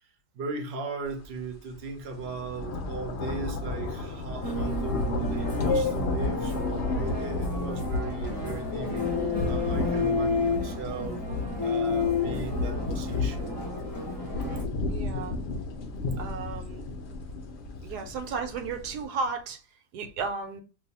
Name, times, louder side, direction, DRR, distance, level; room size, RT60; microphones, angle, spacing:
voice 1, 0.3-11.2 11.6-13.5, right 4 dB, 55° right, 0.7 m, -37 dB
sound 1, 1.2-1.4 1.8-19.1, left 2 dB, 65° left, 0.6 m, -33 dB
sound 2, 4.4-14.6, left 4 dB, 25° left, 0.5 m, -31 dB
voice 2, 14.3-15.3 16.2-17.0 17.8-19.6 19.9-20.6, right 4 dB, 80° right, 1.2 m, -34 dB
2.6 x 2.3 x 4.0 m
omnidirectional pair, 1.7 m